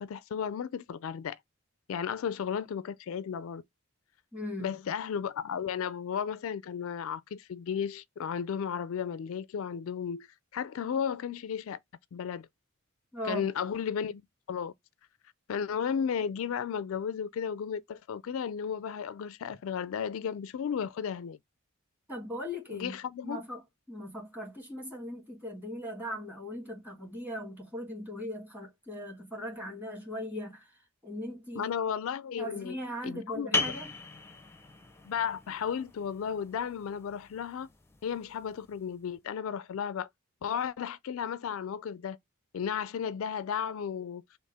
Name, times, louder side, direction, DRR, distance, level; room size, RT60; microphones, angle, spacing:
voice 1, 0.0-1.4 1.9-3.6 4.6-10.3 10.5-11.8 12.1-12.5 13.2-14.2 14.5-14.7 15.5-21.4 22.7-23.4 31.6-32.8 33.0-33.6 35.0-37.7 38.0-40.1 40.4-42.2 42.5-44.2, left 7 dB, 70° left, 0.3 m, -34 dB
voice 2, 4.3-4.8 13.1-13.5 22.1-23.0 23.2-23.6 23.9-30.7 31.0-31.7 32.4-33.9, equal, 10° right, 2.2 m, -39 dB
sound 1, 33.5-38.9, left 3 dB, 10° left, 0.6 m, -37 dB
6.3 x 2.5 x 3.3 m
head